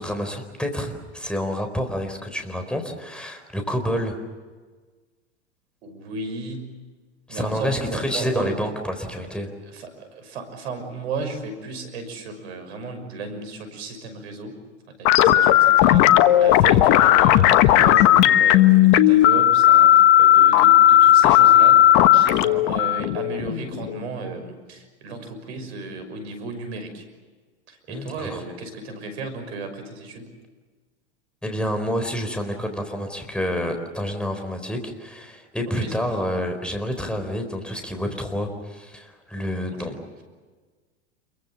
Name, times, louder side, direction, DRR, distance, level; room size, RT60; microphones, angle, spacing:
voice 1, 0.0-4.2 7.3-9.5 27.9-28.4 31.4-40.2, equal, 5° left, 5 dB, 4.4 m, -28 dB
voice 2, 5.8-6.8 7.3-8.6 9.2-9.3 9.7-14.6 15.0-21.8 22.1-27.1 27.7-30.3 35.8-36.1 39.8-39.9, right 3 dB, 65° right, 8 dB, 6.2 m, -34 dB
sound 1, 15.1-24.0, left 12 dB, 50° left, 1.3 m, -15 dB
28.0 x 23.5 x 7.3 m, 1.4 s
hypercardioid pair, 95°, 35 cm